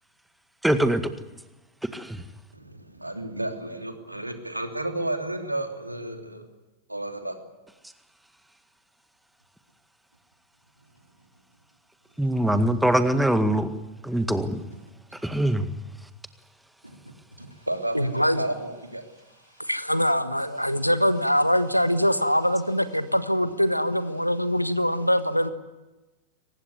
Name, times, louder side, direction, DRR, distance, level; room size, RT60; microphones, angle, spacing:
voice 1, 0.6-1.0 1.9-2.2 12.2-13.7 14.0-14.6 15.1-15.7, right 1 dB, 5° right, 10 dB, 1.9 m, -23 dB
voice 2, 2.5-6.4 6.9-7.4 16.8-17.0 17.4-19.0, right 1 dB, 85° right, 5 dB, 3.0 m, -32 dB
voice 3, 17.9-18.5 19.6-25.5, equal, 90° left, 12 dB, 1.5 m, -23 dB
23.0 x 20.0 x 9.7 m, 1.1 s
figure-of-eight pair, 90°, 0 cm